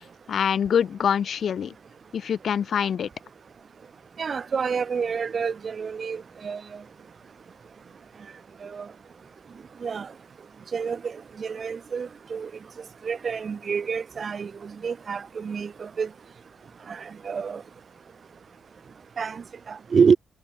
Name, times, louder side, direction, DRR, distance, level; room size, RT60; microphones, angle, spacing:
voice 1, 0.3-1.7 2.1-3.1, left 8 dB, 60° left, 1.0 m, -24 dB
voice 2, 4.2-6.6 8.6-8.9 9.8-10.1 10.7-11.1 11.4-12.5 13.0-16.1 16.9-17.6 19.2-20.2, right 6 dB, 40° right, 1.3 m, -27 dB
wide cardioid pair, 160°, 0 cm